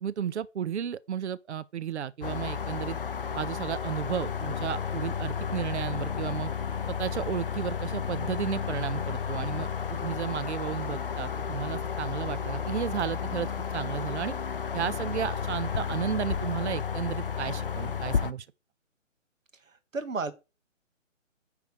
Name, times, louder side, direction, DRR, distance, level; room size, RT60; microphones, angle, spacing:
voice 1, 0.0-3.0 3.3-6.5 6.9-9.7 10.0-13.5 13.7-14.3 14.7-18.4, right 9 dB, 60° right, 0.5 m, -33 dB
sound 1, 2.2-18.3, left 7 dB, 50° left, 0.4 m, -32 dB
voice 2, 19.7-20.3, right 3 dB, 80° right, 1.4 m, -33 dB
9.5 x 3.4 x 4.6 m
figure-of-eight pair, 155°, 38 cm